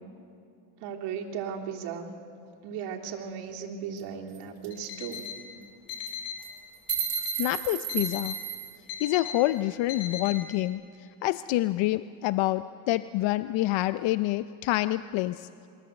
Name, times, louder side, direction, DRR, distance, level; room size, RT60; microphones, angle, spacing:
voice 1, 0.8-2.1 2.6-5.3, right 7 dB, 90° right, 0 dB, 3.2 m, -36 dB
sound 1, 4.0-4.1 4.3-4.4 4.6-4.9 5.1-5.3 5.9-6.1 6.4-8.7, right 13 dB, 50° right, 5.2 m, -33 dB
Alarm, 4.7-5.4 5.9-6.4 6.9-7.4 7.9-8.4 8.9-9.4 9.9-10.4, left 8 dB, 80° left, 4.7 m, -37 dB
voice 2, 7.4-8.4 9.0-10.8 11.2-15.5, left 16 dB, 65° left, 13 dB, 0.6 m, -27 dB
27.5 x 22.0 x 8.1 m, 2.5 s
cardioid pair, 145°, 49 cm